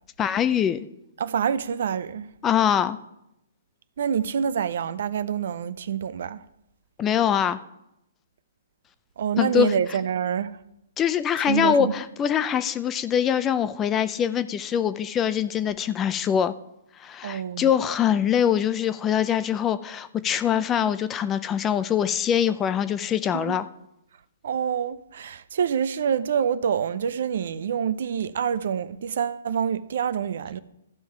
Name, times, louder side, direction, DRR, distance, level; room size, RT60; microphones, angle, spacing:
voice 1, 0.2-0.8 2.4-3.0 7.0-7.6 9.4-9.7 11.0-16.5 17.0-23.7, left 9 dB, 20° left, 0.5 m, -23 dB
voice 2, 1.2-2.3 4.0-6.4 9.2-10.6 11.4-11.9 17.2-17.7 23.3-23.6 24.4-30.6, right 8 dB, 65° right, 0.5 m, -26 dB
14.5 x 5.5 x 4.5 m
hypercardioid pair, 130°, 0 cm